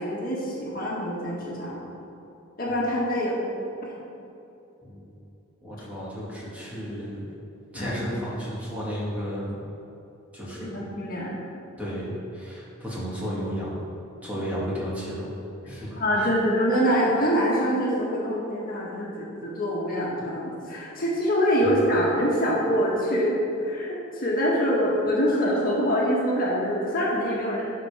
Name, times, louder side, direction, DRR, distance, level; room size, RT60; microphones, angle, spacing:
voice 1, 0.0-1.9 2.6-3.5 7.7-7.9 10.6-11.4 16.0-27.6, equal, 45° left, -5 dB, 1.8 m, -25 dB
voice 2, 5.6-7.3 7.7-9.5 10.3-10.7 11.8-13.8 14.2-15.3 15.7-16.3 21.6-21.8, equal, 5° right, -7 dB, 2.2 m, -33 dB
12.0 x 5.4 x 5.1 m, 2.9 s
head